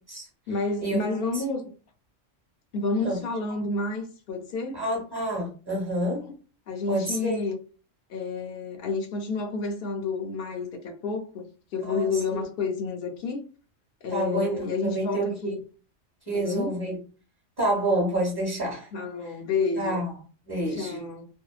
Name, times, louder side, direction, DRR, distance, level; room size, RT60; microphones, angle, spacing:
voice 1, 0.5-1.7 2.7-4.8 6.2-6.3 6.7-7.6 8.1-13.4 14.0-15.6 16.3-16.8 18.9-20.0 20.7-21.3, left 3 dB, 60° left, 0.7 m, -30 dB
voice 2, 4.7-6.3 6.9-7.4 11.8-12.1 14.1-15.6 16.3-17.0 17.6-18.9 19.8-20.1 20.5-21.0, right 1 dB, 20° right, 1.1 m, -28 dB
2.7 x 2.1 x 2.3 m
omnidirectional pair, 1.3 m